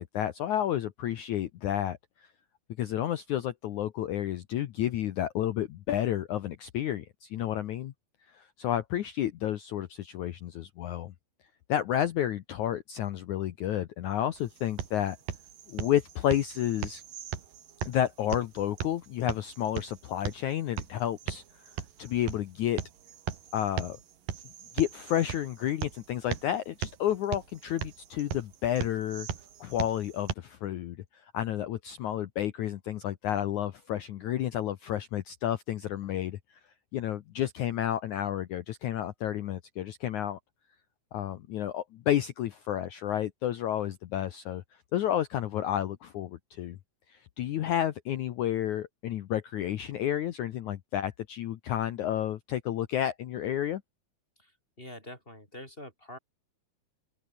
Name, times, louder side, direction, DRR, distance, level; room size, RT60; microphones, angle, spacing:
voice 1, 0.0-2.3 2.8-7.9 8.3-11.1 11.7-15.2 15.7-17.0 17.8-21.7 22.0-22.8 23.5-24.0 24.7-29.3 29.6-36.4 36.9-40.4 41.1-44.6 44.9-46.8 47.1-53.8, left 11 dB, 70° left, 1.9 m, -31 dB
sound 1, 14.3-30.3, right 9 dB, 60° right, 3.9 m, -39 dB
voice 2, 54.8-56.2, left 1 dB, 15° left, 5.0 m, -45 dB
open air
omnidirectional pair, 4.7 m